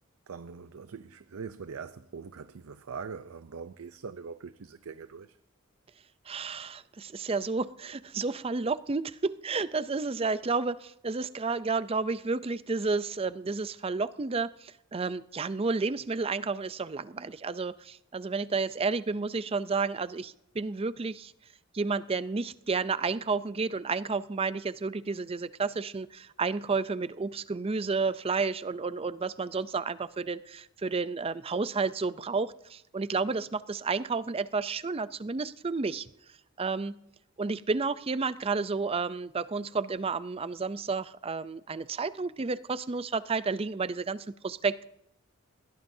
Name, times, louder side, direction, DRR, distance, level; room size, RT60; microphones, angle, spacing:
voice 1, 0.3-5.4, right 5 dB, 80° right, 0.5 m, -42 dB
voice 2, 6.3-21.3 21.7-36.1 36.6-37.0 37.4-44.9, right 4 dB, 25° right, 0.5 m, -31 dB
21.5 x 16.5 x 2.7 m
head